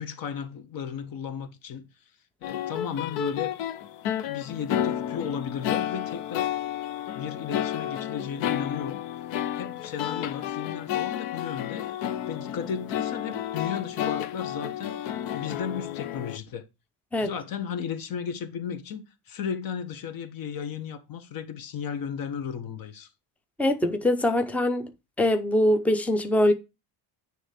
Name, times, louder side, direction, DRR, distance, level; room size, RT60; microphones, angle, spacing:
voice 1, 0.0-1.9 2.4-3.5 4.3-6.5 7.1-9.0 9.6-11.9 12.3-15.0 15.3-16.6 17.2-23.1, left 7 dB, 45° left, 1.4 m, -34 dB
sound 1, 2.4-16.4, left 11 dB, 70° left, 1.0 m, -31 dB
voice 2, 23.6-24.9 25.2-26.5, left 1 dB, 5° left, 0.6 m, -23 dB
9.7 x 3.3 x 6.6 m
cardioid pair, 150°, 48 cm